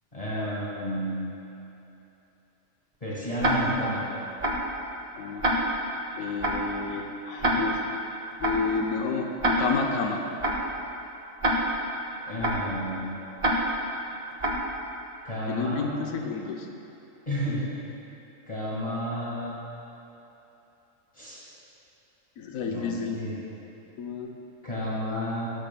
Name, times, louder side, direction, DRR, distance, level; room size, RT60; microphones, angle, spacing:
voice 1, 0.1-1.1 3.0-4.0 12.3-13.0 15.2-15.8 17.3-17.6 18.5-19.5 21.1-21.4 22.7-23.4 24.6-25.5, equal, 25° left, -8 dB, 1.7 m, -31 dB
Tick-tock, 3.4-3.5 4.4-4.5 5.4-5.5 6.4-6.5 7.4-7.5 8.4-8.5 9.4-9.5 10.4-10.5 11.4-11.5 12.4-12.5 13.4-13.5 14.4-14.5, right 2 dB, 35° right, 0.7 m, -24 dB
voice 2, 5.2-5.5 6.2-7.8 8.4-10.2 15.5-16.7 22.4-23.2 24.0-24.3, left 5 dB, 85° left, 2 dB, 1.1 m, -30 dB
11.5 x 10.0 x 2.2 m, 2.9 s
omnidirectional pair, 1.4 m